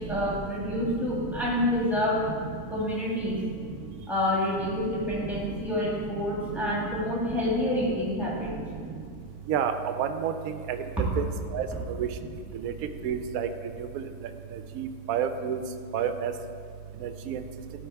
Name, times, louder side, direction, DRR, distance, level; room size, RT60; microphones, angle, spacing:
voice 1, 0.0-2.2 2.7-3.4 4.1-8.5, left 1 dB, ahead, -5 dB, 2.0 m, -28 dB
voice 2, 10.0-10.3 10.7-10.8 11.2-11.3 11.5-11.7 12.0-12.1 12.6-12.7 13.0-13.5 14.8-15.6 15.9-16.3 17.3-17.4, right 9 dB, 75° right, 8 dB, 1.0 m, -28 dB
12.5 x 4.2 x 4.6 m, 2.2 s
omnidirectional pair, 1.6 m